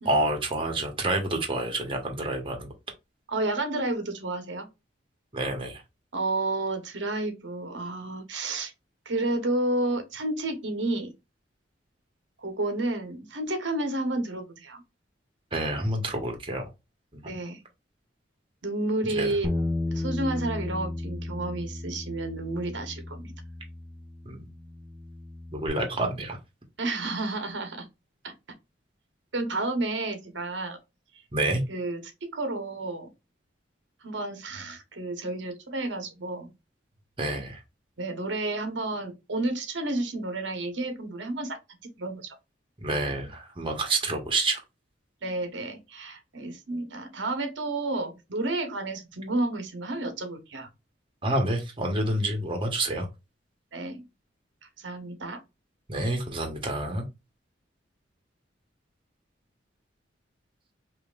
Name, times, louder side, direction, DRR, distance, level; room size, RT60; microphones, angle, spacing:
voice 1, 0.0-2.7 5.3-5.8 15.5-16.7 17.1-17.3 19.1-19.3 24.2-24.5 25.5-26.4 31.3-31.6 37.2-37.6 42.8-44.6 51.2-53.1 55.9-57.1, right 2 dB, 30° right, 1.1 m, -28 dB
voice 2, 3.3-4.7 6.1-8.7 9.0-11.1 12.4-14.8 17.3-17.6 18.6-19.5 19.9-23.3 26.8-27.9 28.2-28.3 29.3-30.8 31.7-33.1 34.0-36.5 38.0-42.4 45.2-50.7 53.7-54.0 54.8-55.4, right 2 dB, 75° right, 1.0 m, -31 dB
Bass guitar, 19.4-25.7, left 2 dB, 10° right, 0.7 m, -34 dB
5.3 x 2.8 x 2.4 m
head